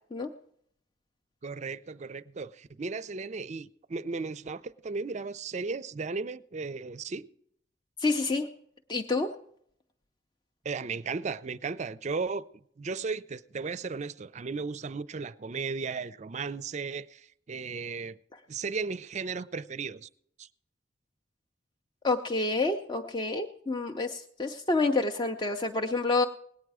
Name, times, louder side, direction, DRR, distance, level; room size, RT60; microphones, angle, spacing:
voice 1, 1.4-7.3 10.6-12.5 12.8-18.2 18.5-20.1 20.4-20.5, right 4 dB, 40° right, 0.4 m, -35 dB
voice 2, 8.0-8.5 8.9-9.3 22.0-26.2, left 3 dB, 25° left, 0.5 m, -28 dB
19.0 x 9.0 x 4.8 m
head